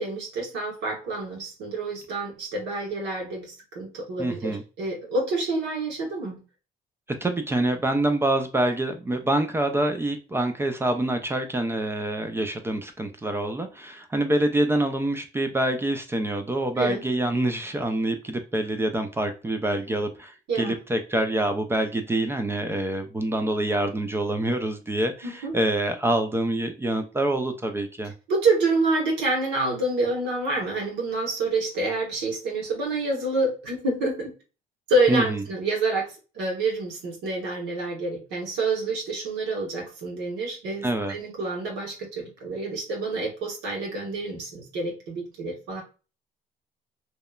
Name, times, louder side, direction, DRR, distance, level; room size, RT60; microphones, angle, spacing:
voice 1, 0.0-6.4 16.8-17.0 20.5-20.7 25.2-25.5 28.3-34.3 34.9-45.8, right 2 dB, 90° right, -2 dB, 1.1 m, -27 dB
voice 2, 4.2-4.6 7.2-28.1 35.1-35.4 40.8-41.2, right 1 dB, 15° right, 6 dB, 0.3 m, -26 dB
2.9 x 2.1 x 2.3 m, 0.33 s
cardioid pair, 110°, 17 cm